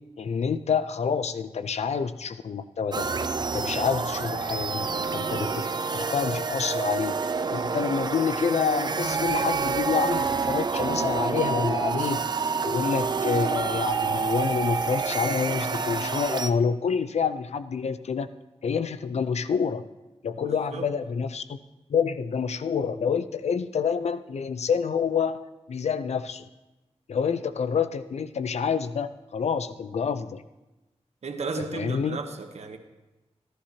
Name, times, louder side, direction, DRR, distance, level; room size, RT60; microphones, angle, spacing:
voice 1, 0.2-3.1 3.4-7.1 7.5-12.2 12.6-18.3 18.6-19.8 20.2-21.6 21.9-26.5 27.1-30.4 31.7-32.2, left 6 dB, 80° left, 0.5 m, -28 dB
sound 1, 2.9-16.5, right 5 dB, 40° right, 0.4 m, -28 dB
voice 2, 20.4-20.9 31.2-32.8, right 4 dB, 80° right, 1.0 m, -34 dB
15.0 x 11.5 x 2.9 m
wide cardioid pair, 90°, 11 cm